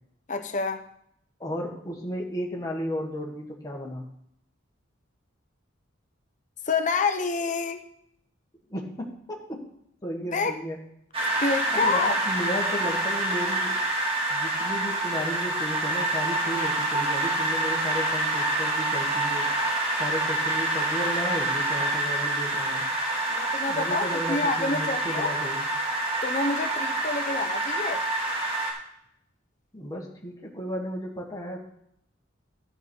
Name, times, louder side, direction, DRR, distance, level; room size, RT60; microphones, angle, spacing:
voice 1, 0.3-0.9 6.7-7.8 10.3-10.5 11.3-12.2 23.3-25.3 26.2-28.0, left 4 dB, 40° left, 7 dB, 0.9 m, -28 dB
voice 2, 1.4-4.0 8.7-9.6 10.0-10.8 11.7-13.8 14.3-19.5 19.9-22.8 23.6-25.7 29.7-31.6, equal, 20° left, -1 dB, 1.6 m, -34 dB
sound 1, 11.1-28.7, right 2 dB, 30° right, 2.4 m, -27 dB
12.0 x 6.8 x 4.6 m, 0.73 s
head